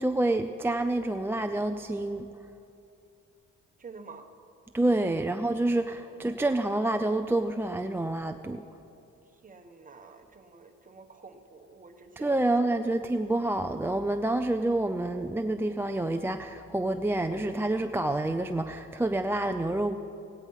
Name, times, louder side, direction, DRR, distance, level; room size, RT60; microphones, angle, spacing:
voice 1, 0.0-2.3 4.7-8.6 12.2-19.9, right 2 dB, 10° right, 6 dB, 0.4 m, -28 dB
voice 2, 3.8-4.3 4.9-5.2 5.8-6.2 9.3-12.7, right 4 dB, 25° right, 5 dB, 1.2 m, -49 dB
17.5 x 9.1 x 5.6 m, 2.7 s
cardioid pair, 90°, 30 cm